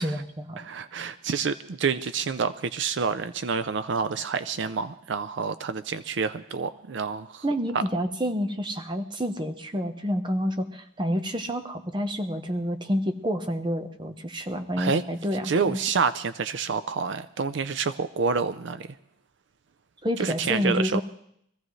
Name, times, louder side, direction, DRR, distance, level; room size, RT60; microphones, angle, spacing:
voice 1, 0.0-0.6 7.4-15.8 20.0-21.0, equal, 25° right, 7 dB, 0.9 m, -28 dB
voice 2, 0.6-7.4 7.7-7.8 14.8-15.0 15.4-18.9 20.2-21.0, right 5 dB, 65° right, 11 dB, 0.5 m, -28 dB
24.0 x 15.0 x 3.2 m, 0.71 s
head